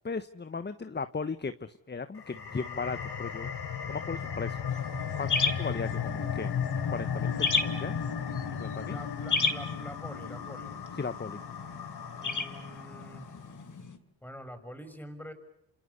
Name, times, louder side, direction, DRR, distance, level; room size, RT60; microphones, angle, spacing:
voice 1, 0.0-3.5 3.9-4.6 5.2-6.5 6.9-8.0 8.5-9.0 11.0-11.4, left 4 dB, 25° left, 11 dB, 1.2 m, -36 dB
sound 1, 2.2-13.3, left 7 dB, 60° left, 4.1 m, -35 dB
sound 2, 4.7-14.0, left 4 dB, 40° left, 3.2 m, -35 dB
voice 2, 8.8-10.8 12.2-13.3 14.2-15.3, equal, 5° left, 8 dB, 6.2 m, -45 dB
29.0 x 26.5 x 7.0 m, 0.82 s
supercardioid pair, 60°, 45 cm